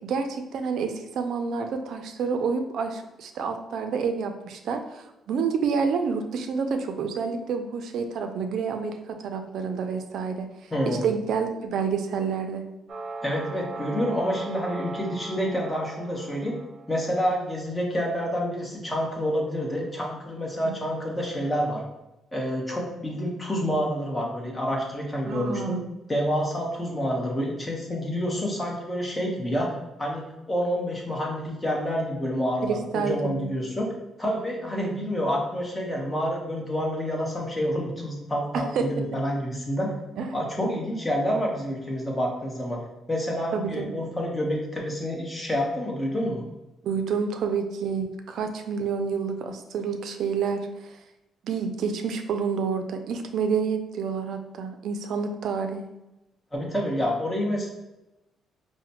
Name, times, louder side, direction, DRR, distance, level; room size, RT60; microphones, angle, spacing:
voice 1, 0.0-10.5 10.9-12.6 20.6-20.7 25.2-25.8 32.6-33.5 38.5-38.9 40.2-40.3 43.5-43.9 46.8-50.9 51.4-55.9, right 5 dB, 70° right, 6 dB, 0.4 m, -28 dB
voice 2, 10.7-11.0 13.2-16.5 16.9-21.8 22.3-25.7 26.1-29.7 30.0-33.9 34.2-39.9 40.3-42.8 43.1-46.4 56.5-57.7, equal, 15° left, -1 dB, 1.0 m, -28 dB
sound 1, 12.9-16.9, right 2 dB, 45° right, 0.8 m, -38 dB
4.9 x 2.1 x 2.9 m, 0.95 s
cardioid pair, 90°, 0 cm